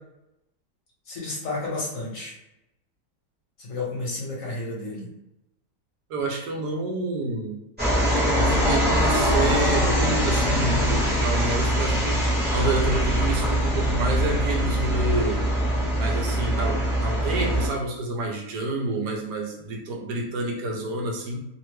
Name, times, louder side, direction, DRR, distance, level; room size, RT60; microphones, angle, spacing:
voice 1, 1.0-2.3 3.6-5.1, left 2 dB, 55° left, -4 dB, 1.3 m, -31 dB
voice 2, 6.1-7.6 8.3-12.3 12.5-15.4 16.0-21.4, right 2 dB, 80° right, 1 dB, 1.2 m, -28 dB
sound 1, 7.8-17.7, equal, 10° right, 0.7 m, -23 dB
3.2 x 2.1 x 3.1 m, 0.86 s
omnidirectional pair, 1.7 m